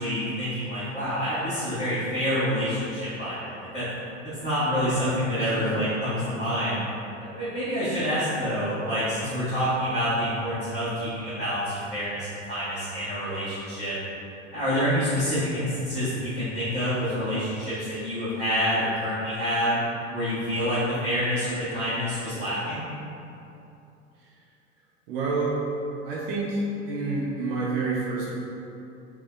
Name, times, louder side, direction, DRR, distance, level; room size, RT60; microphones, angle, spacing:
voice 1, 0.0-3.8 4.2-6.8 7.2-13.9 14.5-19.8 20.1-22.9, equal, 15° left, -16 dB, 1.3 m, -27 dB
voice 2, 5.4-5.7 25.1-25.6 26.0-28.3, right 3 dB, 50° right, -4 dB, 0.7 m, -28 dB
3.7 x 3.0 x 2.2 m, 2.8 s
figure-of-eight pair, 80°, 38 cm